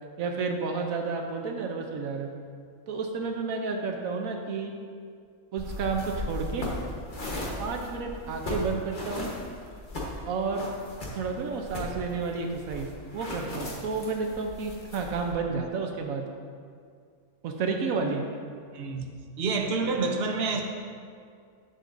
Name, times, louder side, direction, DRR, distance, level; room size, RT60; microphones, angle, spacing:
voice 1, 0.2-2.3 2.9-4.7 5.5-6.7 7.6-9.3 10.2-10.7 11.1-16.3 17.4-18.2, right 4 dB, 75° right, 3 dB, 1.1 m, -31 dB
sound 1, 5.6-15.3, left 1 dB, 35° left, 1.3 m, -37 dB
voice 2, 18.7-19.1 19.4-20.6, right 4 dB, 55° right, 3 dB, 0.9 m, -28 dB
9.7 x 7.5 x 2.6 m, 2.2 s
omnidirectional pair, 1.5 m